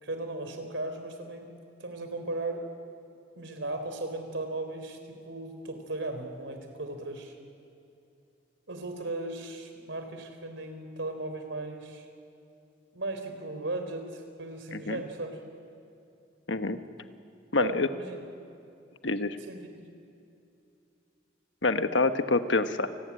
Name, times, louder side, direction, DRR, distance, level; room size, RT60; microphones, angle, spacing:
voice 1, 0.0-1.5 1.8-2.7 3.4-7.4 8.7-12.1 12.9-15.4 17.6-18.2 19.4-19.8, right 2 dB, 90° right, 7 dB, 3.9 m, -36 dB
voice 2, 16.5-16.8 17.5-17.9 19.0-19.4 21.6-22.9, left 3 dB, 80° left, 9 dB, 1.3 m, -26 dB
28.5 x 19.0 x 9.9 m, 2.6 s
head